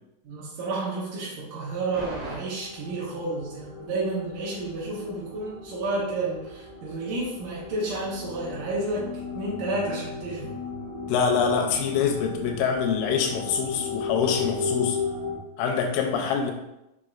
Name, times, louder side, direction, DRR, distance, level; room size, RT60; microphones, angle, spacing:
voice 1, 0.2-10.6, right 2 dB, 75° right, -7 dB, 2.5 m, -31 dB
sound 1, 1.9-15.4, left 4 dB, 50° right, 1.4 m, -35 dB
voice 2, 11.1-15.0 15.6-16.5, left 6 dB, 90° left, 2 dB, 2.3 m, -25 dB
6.1 x 3.3 x 2.4 m, 0.91 s
omnidirectional pair, 4.0 m